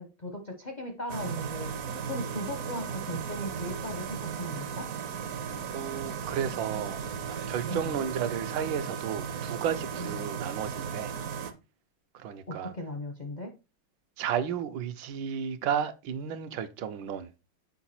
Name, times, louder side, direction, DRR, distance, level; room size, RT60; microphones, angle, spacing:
voice 1, 0.0-1.7 2.0-4.9 7.7-7.9 10.0-10.2 12.5-13.5, left 1 dB, 55° left, 0.5 m, -37 dB
sound 1, 1.1-11.5, right 7 dB, 60° right, 0.9 m, -36 dB
voice 2, 5.7-7.0 7.5-11.1 12.1-12.7 14.2-17.3, right 8 dB, 75° right, 1.4 m, -33 dB
7.0 x 4.7 x 4.2 m
omnidirectional pair, 2.2 m